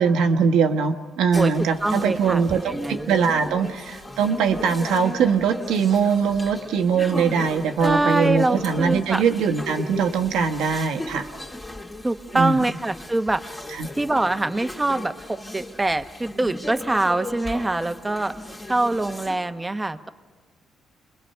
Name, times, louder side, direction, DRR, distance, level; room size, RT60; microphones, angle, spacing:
voice 1, 0.0-11.3 12.3-12.6 13.7-13.9, right 6 dB, 90° right, 5 dB, 1.2 m, -22 dB
sound 1, 1.3-19.4, left 1 dB, 15° left, 2.1 m, -37 dB
voice 2, 1.8-3.6 7.8-9.2 12.0-13.4 14.0-18.3 18.7-20.1, right 2 dB, 15° right, 9 dB, 0.9 m, -24 dB
29.0 x 21.5 x 5.6 m, 1.4 s
cardioid pair, 90°, 0 cm